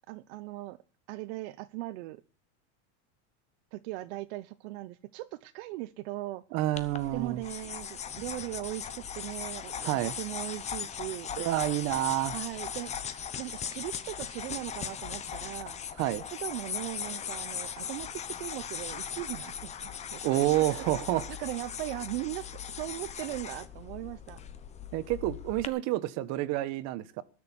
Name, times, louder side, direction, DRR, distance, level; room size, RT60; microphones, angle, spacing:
voice 1, 0.1-0.8 1.1-2.2 3.7-6.4 7.1-11.3 12.3-15.8 16.4-20.9 21.4-22.5 22.8-24.4, right 18 dB, 65° right, 1.0 m, -39 dB
voice 2, 6.5-7.4 9.8-10.1 11.4-12.4 16.0-16.2 20.2-21.3 24.9-27.2, right 15 dB, 45° right, 1.3 m, -29 dB
sound 1, 6.8-25.7, left 8 dB, 20° left, 0.9 m, -39 dB
20.0 x 6.7 x 9.8 m
supercardioid pair, 160°, 36 cm